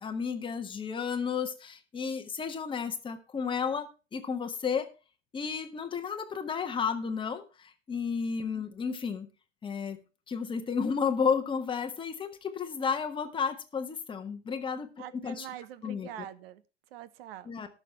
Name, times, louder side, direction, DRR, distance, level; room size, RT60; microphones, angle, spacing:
voice 1, 0.0-4.9 5.3-9.3 9.6-10.0 10.3-15.5 15.8-16.1 17.5-17.7, left 6 dB, 15° left, 6 dB, 1.3 m, -32 dB
voice 2, 15.0-16.6 16.9-17.5, right 12 dB, 55° right, 15 dB, 1.2 m, -44 dB
18.5 x 6.8 x 3.3 m, 0.33 s
hypercardioid pair, 130°, 36 cm